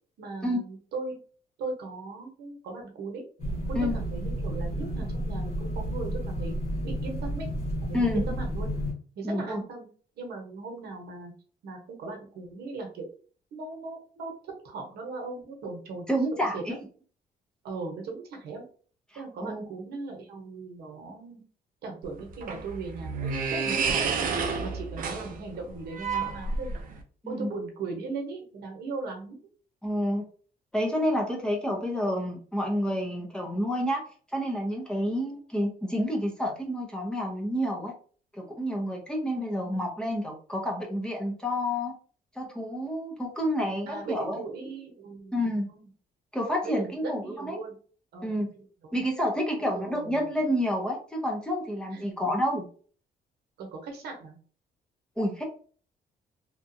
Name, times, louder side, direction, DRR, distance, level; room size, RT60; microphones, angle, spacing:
voice 1, 0.2-1.2 1.6-3.2 3.7-6.6 6.8-7.5 7.8-8.7 9.2-9.9 10.2-11.3 11.6-13.0 13.5-16.6 17.6-18.6 19.1-21.4 21.8-24.2 24.6-26.8 27.3-29.4 43.9-45.9 46.6-47.7 48.1-49.0 49.6-50.4 51.9-52.1 53.6-54.4, right 3 dB, 80° right, 2 dB, 1.0 m, -38 dB
sound 1, 3.4-8.9, equal, 45° left, 1.4 m, -31 dB
voice 2, 9.2-9.6 16.1-16.7 19.1-19.7 27.2-27.5 29.8-30.2 30.7-34.0 34.3-37.9 38.3-41.9 42.4-44.4 45.3-45.7 46.3-47.6 48.2-48.5 48.9-52.7 55.2-55.4, equal, 5° left, 0 dB, 0.8 m, -29 dB
sound 2, 22.0-27.0, right 5 dB, 60° right, 0.6 m, -30 dB
2.9 x 2.4 x 2.6 m, 0.43 s
cardioid pair, 120°, 16 cm